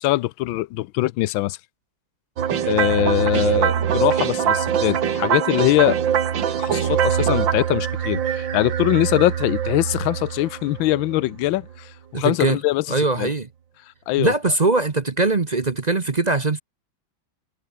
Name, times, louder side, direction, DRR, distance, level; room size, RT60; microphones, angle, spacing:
voice 1, 0.0-1.6 2.6-6.0 6.6-12.8 13.2-13.3 14.1-14.3, left 17 dB, 80° left, 1.4 m, -22 dB
sound 1, 2.4-11.6, right 8 dB, 70° right, 2.2 m, -23 dB
voice 2, 12.1-12.6 12.9-13.5 14.2-16.6, right 3 dB, 30° right, 0.8 m, -21 dB
omnidirectional pair, 2.2 m